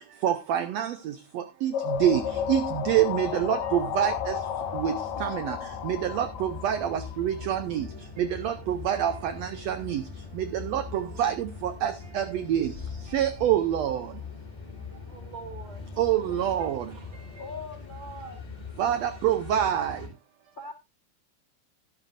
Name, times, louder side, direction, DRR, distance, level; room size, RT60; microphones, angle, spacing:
voice 1, 0.2-2.2 2.5-4.4 4.7-5.6 5.8-7.9 8.2-10.0 10.4-12.7 13.1-14.1 16.0-16.8 18.8-20.0, right 10 dB, 75° right, 1.5 m, -26 dB
sound 1, 1.7-7.5, left 9 dB, 65° left, 2.4 m, -33 dB
sound 2, 1.9-20.1, left 5 dB, 20° left, 2.7 m, -42 dB
voice 2, 15.1-15.9, right 5 dB, 55° right, 3.1 m, -43 dB
voice 3, 16.1-16.8 17.4-18.4 20.5-20.7, left 2 dB, 90° left, 0.4 m, -41 dB
12.0 x 11.5 x 2.6 m
omnidirectional pair, 3.8 m